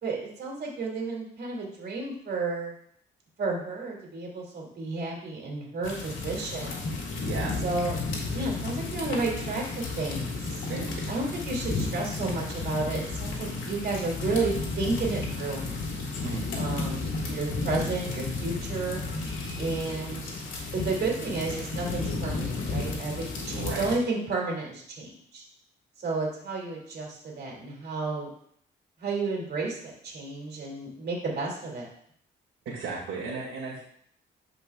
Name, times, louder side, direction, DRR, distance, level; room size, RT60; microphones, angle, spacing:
voice 1, 0.0-2.8 3.4-6.8 7.6-7.9 8.3-10.6 11.1-15.6 16.6-19.0 19.6-20.3 20.7-25.4 26.0-28.3 29.0-29.8 30.0-31.9, right 3 dB, 55° right, -2 dB, 2.6 m, -32 dB
sound 1, 5.8-24.0, left 3 dB, 75° left, 2.1 m, -33 dB
voice 2, 7.2-7.6 10.7-11.0 16.2-16.4 23.5-23.9 32.6-33.8, right 4 dB, 80° right, -5 dB, 2.2 m, -34 dB
11.0 x 5.1 x 2.4 m, 0.65 s
cardioid pair, 90°, 20 cm